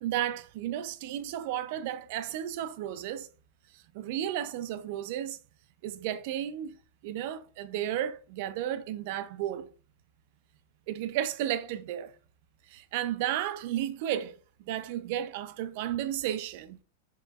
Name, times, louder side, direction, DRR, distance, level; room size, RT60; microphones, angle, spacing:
voice 1, 0.0-3.3 3.9-5.4 5.8-6.8 7.0-9.7 10.9-12.1 12.7-14.4 14.7-16.8, right 11 dB, 45° right, 0.4 m, -33 dB
6.5 x 3.0 x 2.3 m
supercardioid pair, 170°, 0 cm